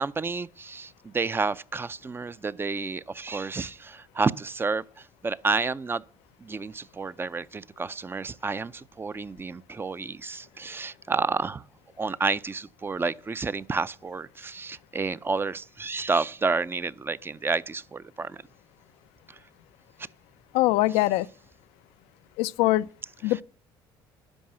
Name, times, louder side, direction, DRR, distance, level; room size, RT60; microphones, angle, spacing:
voice 1, 0.0-4.8 5.2-6.0 6.4-11.6 12.0-18.4 23.3-23.4, right 4 dB, 25° right, 0.4 m, -30 dB
voice 2, 20.5-21.3 22.4-22.9 23.2-23.4, left 17 dB, 85° left, 0.4 m, -22 dB
11.5 x 4.7 x 7.5 m
supercardioid pair, 85°, 10 cm